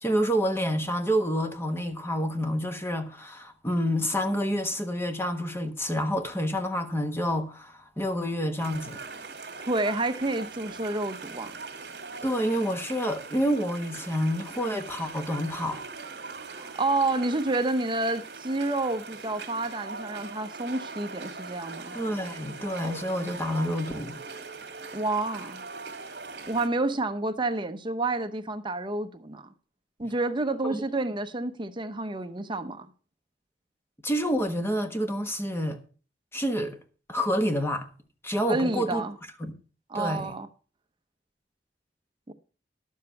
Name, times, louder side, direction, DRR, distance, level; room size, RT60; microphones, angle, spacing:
voice 1, 0.0-9.0 12.2-15.8 21.9-24.2 30.6-30.8 34.0-35.8 36.3-36.8 37.1-37.9 38.2-39.0 39.4-39.5 39.9-40.3, equal, 15° left, 1.2 m, -28 dB
sound 1, 8.6-26.7, right 4 dB, 65° right, 1.9 m, -41 dB
voice 2, 9.7-11.5 16.5-22.0 24.9-25.6 26.5-29.5 30.0-32.9 38.5-39.2 39.9-40.5 42.3-42.4, right 2 dB, 25° right, 0.8 m, -29 dB
11.5 x 7.4 x 5.7 m
head